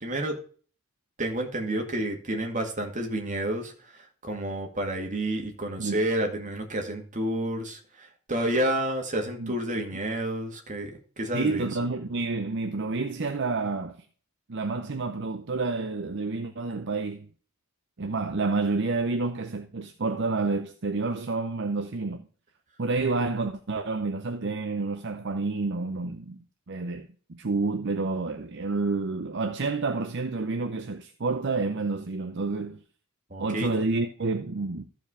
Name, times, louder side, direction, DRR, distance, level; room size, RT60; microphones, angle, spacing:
voice 1, 0.0-0.4 1.2-10.9 11.2-11.7 33.3-33.7, right 1 dB, 35° right, 2.1 m, -30 dB
voice 2, 11.3-14.0 14.5-17.3 18.0-22.3 22.8-26.4 26.7-32.8 33.4-34.8, right 3 dB, 55° right, 0.7 m, -29 dB
14.0 x 4.9 x 4.9 m
head